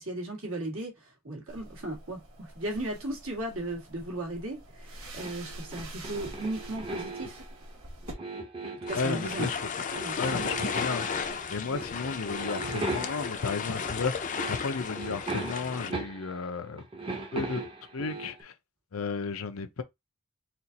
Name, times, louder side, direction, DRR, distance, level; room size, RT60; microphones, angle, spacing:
voice 1, 0.0-7.4 8.9-9.5 9.9-10.2, right 1 dB, 70° right, 2.1 m, -36 dB
sound 1, 1.5-8.1, right 1 dB, 85° right, 1.6 m, -46 dB
sound 2, 5.2-7.5 8.0-9.7 9.9-11.4 11.7-12.0 12.3-13.5 14.0-14.1 14.4-16.5 16.8-18.4, right 2 dB, 25° right, 0.9 m, -38 dB
voice 2, 8.9-9.6 10.2-16.8 17.3-17.6 17.9-18.5 18.9-19.8, left 4 dB, 80° left, 0.7 m, -33 dB
sound 3, 8.9-15.9, left 5 dB, 40° left, 0.5 m, -34 dB
4.4 x 2.5 x 4.0 m
head